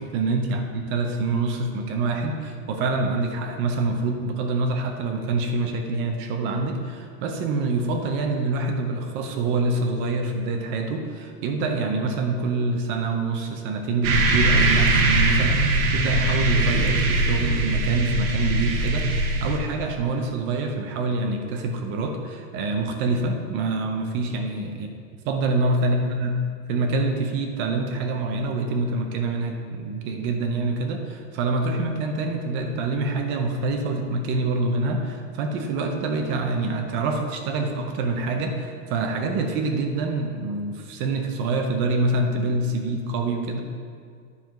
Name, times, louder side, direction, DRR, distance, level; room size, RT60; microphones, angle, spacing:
voice 1, 0.0-24.9 25.3-26.3 26.7-43.6, right 3 dB, 30° right, 4 dB, 0.6 m, -26 dB
sound 1, 14.0-19.6, right 2 dB, 70° right, 1.1 m, -21 dB
9.7 x 4.7 x 5.1 m, 2.1 s
supercardioid pair, 170°, 43 cm